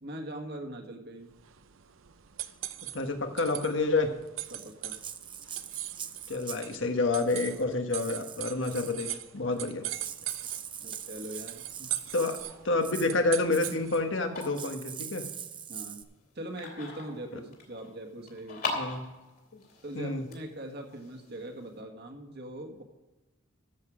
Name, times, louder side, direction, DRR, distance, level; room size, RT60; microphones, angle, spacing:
voice 1, 0.0-1.3 4.5-5.0 10.2-10.3 10.8-11.9 15.7-16.0 16.4-18.8 19.8-22.8, right 1 dB, 55° right, 3 dB, 1.8 m, -41 dB
sound 1, 1.3-14.2, right 13 dB, 85° right, 0.7 m, -41 dB
voice 2, 2.9-4.1 6.3-9.8 12.1-12.4 12.6-15.2 18.7-19.0 19.5-19.6 19.9-20.2, left 3 dB, 70° left, 5 dB, 1.5 m, -28 dB
Rattle (instrument), 4.4-6.7 7.2-7.6 7.9-9.0 9.6-9.7 9.8-12.5 12.8-13.1 13.5-13.8 14.4-16.0, right 8 dB, 25° right, 0.6 m, -42 dB
sound 2, 12.4-21.8, left 3 dB, 50° left, 3.1 m, -43 dB
13.5 x 7.8 x 4.9 m, 1.1 s
head